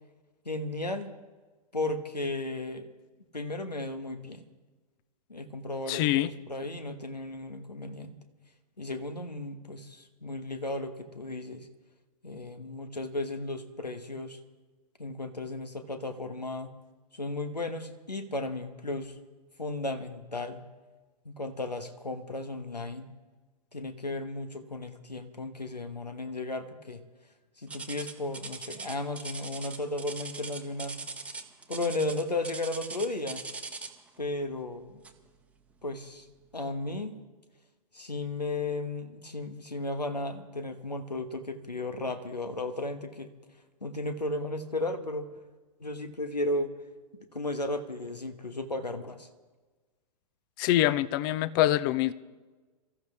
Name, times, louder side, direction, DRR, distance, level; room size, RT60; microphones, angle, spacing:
voice 1, 0.4-1.1 1.7-2.9 3.3-4.4 5.3-8.2 8.8-11.7 12.2-14.4 15.0-16.7 17.1-19.1 19.6-20.6 21.2-23.1 23.7-27.0 27.6-31.0 31.7-33.4 34.2-35.0 35.8-36.3 36.5-37.2 37.9-43.3 43.8-45.3 45.8-46.7 47.3-49.3, left 2 dB, 90° left, 1.4 m, -34 dB
voice 2, 5.9-6.3 50.6-52.1, left 14 dB, 35° left, 0.6 m, -25 dB
sound 1, 27.7-34.1 35.0-35.3 35.8-36.0 36.6-36.7, right 4 dB, 5° right, 1.0 m, -40 dB
24.0 x 14.0 x 3.4 m
figure-of-eight pair, 110°, 20 cm